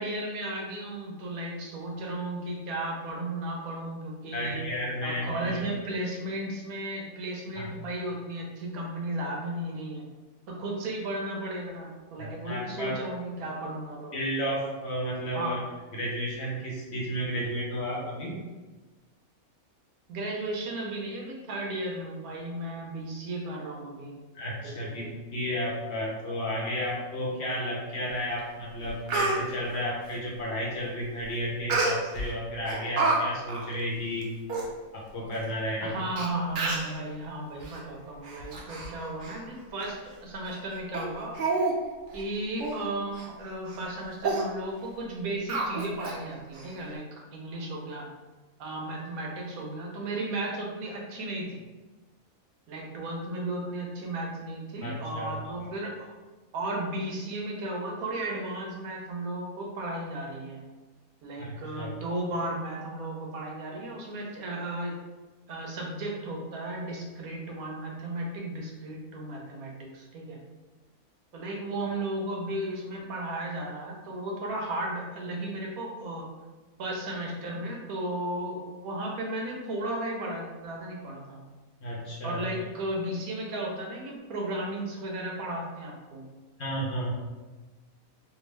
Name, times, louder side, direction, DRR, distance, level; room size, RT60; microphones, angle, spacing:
voice 1, 0.0-4.6 5.0-10.1 10.5-14.2 15.3-15.6 20.1-24.2 24.6-25.1 35.8-41.4 42.1-48.1 48.6-51.6 52.7-56.1 56.5-60.6 61.2-65.0 65.5-70.4 71.3-76.3 76.8-81.4 82.2-86.2, right 1 dB, 80° right, -1 dB, 1.2 m, -35 dB
voice 2, 4.3-5.6 7.5-7.7 12.2-13.0 14.1-15.6 15.9-18.4 24.3-34.3 34.9-36.0 54.8-55.3 61.4-61.9 81.8-82.4 86.6-87.1, equal, 60° left, -3 dB, 0.8 m, -32 dB
Speech, 28.4-28.5 28.8-29.4 31.7-32.2 32.7-33.2 33.5-33.6 34.2-34.3 34.5-34.7 35.4-35.5 36.2-36.3 36.5-36.9 37.6-37.8 38.2-38.9 39.2-39.4 39.8-39.9 40.4-40.6 40.9-41.0 41.3-41.7 42.1-42.2 42.6-42.8 43.1-43.3 43.7-43.8 44.2-44.4 45.5-46.2 46.5-46.6, right 3 dB, 60° right, 0.5 m, -29 dB
3.5 x 2.3 x 3.2 m, 1.2 s
omnidirectional pair, 1.5 m